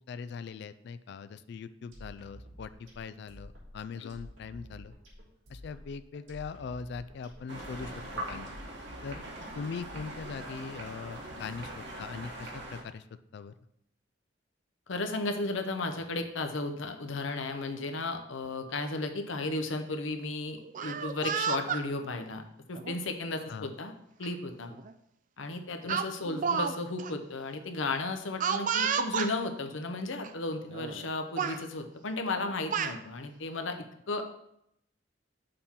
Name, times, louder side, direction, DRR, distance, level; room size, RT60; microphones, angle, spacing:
voice 1, 0.0-4.9 5.5-8.5 9.0-9.2 9.5-13.0 13.3-13.5 23.5-23.7, left 5 dB, 60° left, 13 dB, 0.3 m, -41 dB
sound 1, 1.9-10.6, equal, 90° right, 3.0 m, -50 dB
sound 2, 7.5-12.8, right 1 dB, 65° right, 1.4 m, -42 dB
voice 2, 14.9-22.4 22.7-23.9 24.2-24.7 25.4-34.4, left 2 dB, 85° left, 6 dB, 0.8 m, -34 dB
Speech, 20.6-21.8 22.7-23.0 24.2-24.3 24.7-24.9 25.9-26.7 27.0-27.1 28.4-29.3 30.2-30.3 30.7-31.1 31.4-31.6 32.4-33.0, right 6 dB, 45° right, 0.4 m, -31 dB
6.7 x 3.7 x 5.6 m, 0.76 s
head